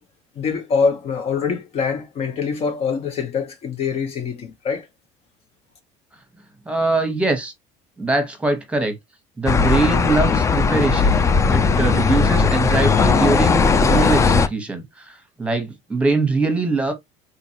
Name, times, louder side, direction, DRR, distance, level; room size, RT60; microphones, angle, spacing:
voice 1, 0.4-4.9, left 5 dB, 45° left, 0.7 m, -24 dB
voice 2, 6.7-7.5 8.0-8.9 9.4-16.9, right 3 dB, 10° right, 1.1 m, -22 dB
sound 1, 9.5-14.5, left 5 dB, 20° left, 0.3 m, -17 dB
3.9 x 2.5 x 2.8 m
supercardioid pair, 110°, 14 cm